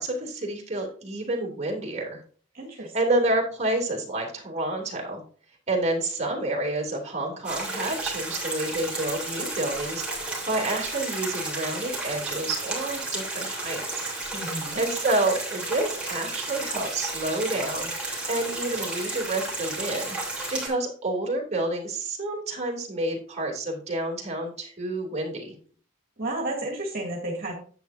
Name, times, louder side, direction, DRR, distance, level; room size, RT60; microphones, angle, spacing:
voice 1, 0.0-2.2 2.9-5.2 5.7-14.1 14.7-20.2 20.5-25.5, right 2 dB, 35° right, -1 dB, 2.8 m, -29 dB
voice 2, 2.5-2.9 14.3-14.8 26.2-27.5, right 1 dB, 50° right, -2 dB, 2.3 m, -32 dB
sound 1, 7.4-20.7, right 2 dB, 5° right, 3.3 m, -32 dB
10.5 x 8.3 x 2.7 m, 0.43 s
head